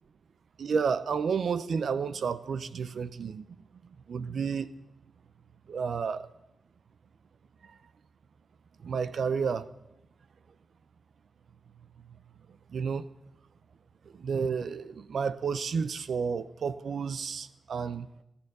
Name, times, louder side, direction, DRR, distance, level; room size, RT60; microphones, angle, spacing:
voice 1, 0.6-3.4 4.1-4.7 5.7-6.3 7.6-7.7 8.8-9.7 12.7-13.1 14.1-18.1, right 6 dB, 65° right, 0.7 m, -31 dB
14.5 x 13.0 x 6.8 m
wide cardioid pair, 135°, 0 cm